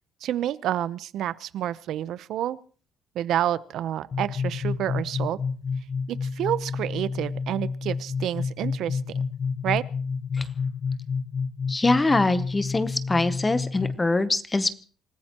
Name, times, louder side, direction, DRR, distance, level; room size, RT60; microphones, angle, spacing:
voice 1, 0.2-2.6 3.1-5.4 6.1-9.0 9.6-9.8, right 11 dB, 70° right, 17 dB, 0.7 m, -29 dB
sound 1, 4.1-13.9, left 5 dB, 45° left, 0.7 m, -30 dB
voice 2, 11.7-14.8, left 2 dB, 15° left, 13 dB, 0.8 m, -23 dB
27.0 x 15.5 x 3.0 m, 0.40 s
cardioid pair, 140°, 0 cm